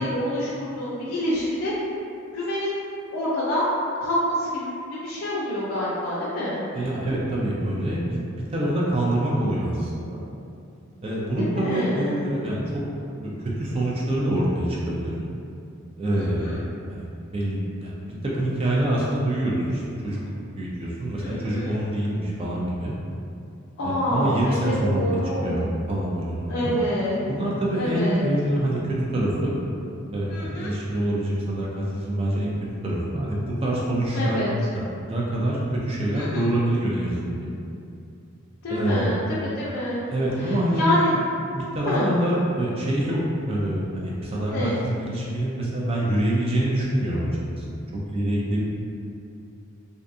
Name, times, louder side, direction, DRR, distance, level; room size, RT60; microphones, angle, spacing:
voice 1, 0.0-1.8 2.3-2.8 3.1-3.7 4.0-6.6 11.4-12.2 16.1-16.6 21.1-21.8 23.8-25.7 26.5-27.2 27.8-28.2 30.3-30.7 34.1-34.5 36.1-36.4 38.6-40.0 40.4-41.1 41.8-42.1 44.5-44.8, left 1 dB, 80° left, -8 dB, 0.4 m, -27 dB
voice 2, 6.7-10.3 11.0-12.8 13.4-15.1 16.0-16.5 16.9-20.2 20.6-22.9 23.8-25.0 25.4-26.7 27.3-29.6 30.1-32.5 32.8-34.4 34.7-37.6 38.7-39.1 40.1-40.9 41.5-43.2 43.5-48.6, right 1 dB, 25° right, -5 dB, 0.4 m, -26 dB
2.5 x 2.3 x 2.5 m, 2.5 s
head